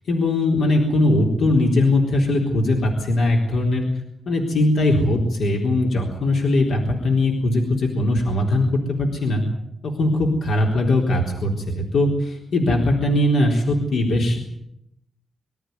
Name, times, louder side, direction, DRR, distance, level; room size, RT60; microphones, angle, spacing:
voice 1, 0.1-3.9 4.3-8.7 9.0-9.4 9.8-14.4, left 1 dB, 85° left, 1 dB, 3.9 m, -20 dB
24.0 x 13.5 x 9.5 m, 0.76 s
wide cardioid pair, 170°, 0 cm